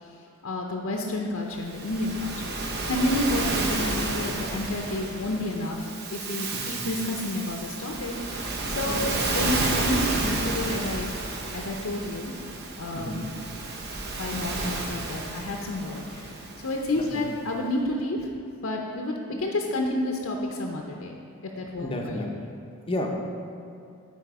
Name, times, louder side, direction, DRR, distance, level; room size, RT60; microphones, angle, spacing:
voice 1, 0.4-11.1 11.5-12.3 12.8-13.2 14.1-18.3 18.6-21.2 21.4-22.3, left 1 dB, 65° left, 1 dB, 0.6 m, -30 dB
Waves surf, 1.6-17.1, right 2 dB, 50° right, 0.7 m, -31 dB
voice 2, 13.0-13.3 17.0-17.1 21.8-22.3 22.9-23.1, left 1 dB, 25° left, 1 dB, 0.6 m, -32 dB
8.9 x 4.2 x 4.7 m, 2.4 s
head